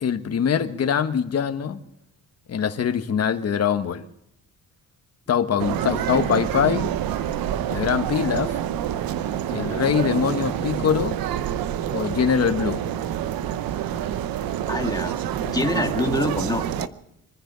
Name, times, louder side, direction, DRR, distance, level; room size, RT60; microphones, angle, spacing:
voice 1, 0.0-1.8 2.5-4.0 5.3-6.9 7.7-8.6 9.5-11.2 11.9-12.8, left 7 dB, 45° left, 8 dB, 1.3 m, -23 dB
sound 1, 5.6-16.9, right 10 dB, 80° right, 0.9 m, -27 dB
voice 2, 14.7-16.9, left 2 dB, 10° left, 3 dB, 1.9 m, -26 dB
25.5 x 10.0 x 5.5 m, 0.83 s
cardioid pair, 125°, 35 cm